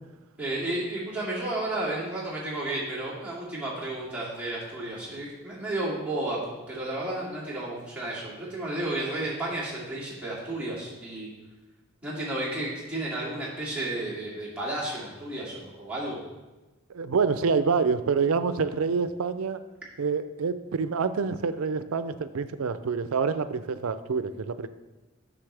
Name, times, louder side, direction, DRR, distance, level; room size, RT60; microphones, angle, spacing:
voice 1, 0.4-11.3 12.0-16.2, right 1 dB, 5° right, -8 dB, 2.3 m, -32 dB
voice 2, 16.9-19.6 20.0-24.7, right 5 dB, 85° right, 12 dB, 0.5 m, -27 dB
9.7 x 6.4 x 3.3 m, 1.2 s
head